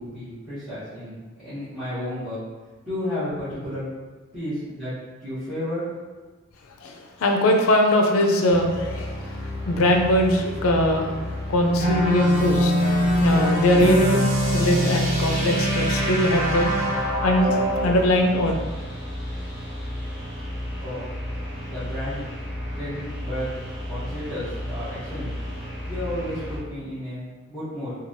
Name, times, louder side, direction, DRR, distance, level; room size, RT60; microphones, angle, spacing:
voice 1, 0.0-2.4 2.8-3.8 4.3-4.9 5.2-5.8 20.7-21.1 21.6-22.2 22.7-23.5 23.8-25.3 25.8-28.0, left 1 dB, 5° right, -18 dB, 1.1 m, -32 dB
voice 2, 6.8-9.4 9.7-11.1 11.5-16.7 17.0-18.5, equal, 80° left, 2 dB, 0.4 m, -21 dB
sound 1, 8.5-26.6, left 1 dB, 30° left, 1.4 m, -33 dB
sound 2, 11.8-18.0, equal, 35° right, 0.7 m, -23 dB
3.1 x 2.3 x 2.6 m, 1.3 s
head